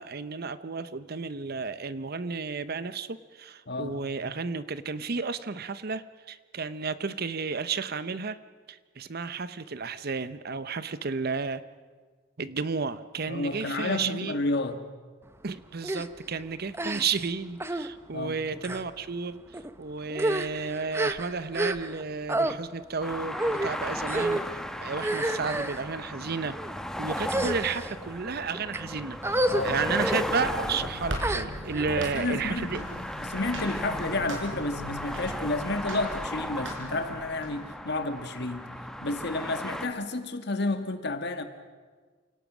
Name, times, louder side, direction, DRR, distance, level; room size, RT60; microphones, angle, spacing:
voice 1, 0.0-8.4 8.7-11.6 12.4-14.4 15.4-19.4 19.8-24.4 24.8-26.6 27.0-32.8, right 4 dB, 55° right, 14 dB, 0.8 m, -32 dB
voice 2, 13.3-14.8 18.1-18.4 29.5-29.8 32.0-32.9 33.2-38.6 39.0-41.4, left 2 dB, 60° left, 8 dB, 1.7 m, -31 dB
sound 1, 15.8-16.1 16.7-17.3 17.6-17.9 18.6-18.8 19.5-19.7 20.1-22.0 22.3-22.5 23.3-23.7 24.1-24.4 25.0-25.8 26.5-26.7 27.2-27.9 28.5-28.8 29.2-29.6 30.0-30.2 31.2-31.8, right 1 dB, 15° right, 0.7 m, -29 dB
sound 2, 23.0-39.9, left 1 dB, 5° left, 1.1 m, -36 dB
sound 3, 30.0-37.5, equal, 75° right, 4.9 m, -39 dB
28.5 x 18.0 x 6.2 m, 1.5 s
head